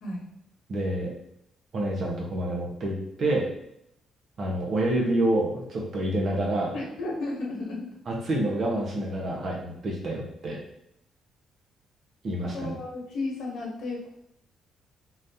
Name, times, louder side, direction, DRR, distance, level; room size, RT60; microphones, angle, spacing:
voice 1, 0.7-1.1 1.7-3.5 4.4-6.7 8.1-10.6 12.2-12.8, right 1 dB, 55° right, -2 dB, 1.1 m, -28 dB
voice 2, 6.7-7.8 12.5-14.1, left 2 dB, 80° left, -2 dB, 1.0 m, -33 dB
4.0 x 3.1 x 2.7 m, 0.78 s
cardioid pair, 90°, 0 cm